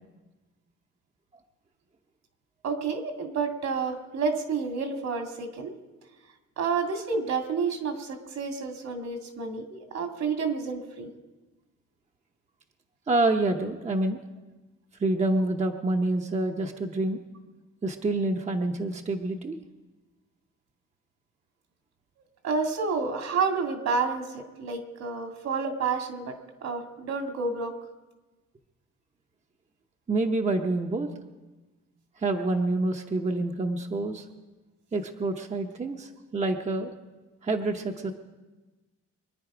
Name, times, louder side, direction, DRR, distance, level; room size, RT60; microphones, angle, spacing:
voice 1, 2.6-5.7 6.6-11.1 22.4-27.7, right 4 dB, 70° right, 4 dB, 2.3 m, -30 dB
voice 2, 13.1-14.2 15.0-17.2 17.8-19.6 30.1-31.1 32.2-34.3 34.9-36.9 37.4-38.1, right 2 dB, 25° right, 3 dB, 0.8 m, -27 dB
24.5 x 10.0 x 4.9 m, 1.2 s
cardioid pair, 125°, 29 cm